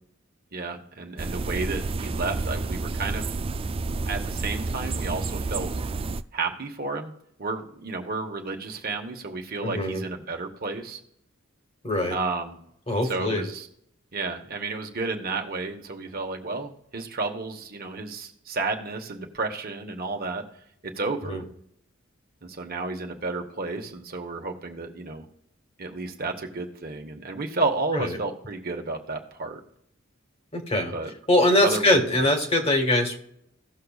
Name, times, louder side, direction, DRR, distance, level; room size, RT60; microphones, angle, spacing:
voice 1, 0.5-3.3 4.0-5.7 6.3-7.1 7.4-11.0 12.1-12.6 13.0-13.7 14.1-20.4 20.8-21.4 22.4-25.3 25.8-29.6 30.9-31.1 31.6-32.2, right 3 dB, 50° right, 3 dB, 1.2 m, -32 dB
sound 1, 1.2-6.2, right 3 dB, 30° right, 0.3 m, -30 dB
voice 2, 9.6-10.0 11.8-12.2 12.9-13.4 21.2-21.4 27.9-28.2 30.5-30.9 31.3-33.2, left 1 dB, 30° left, 3 dB, 1.7 m, -22 dB
17.0 x 6.6 x 2.4 m, 0.74 s
head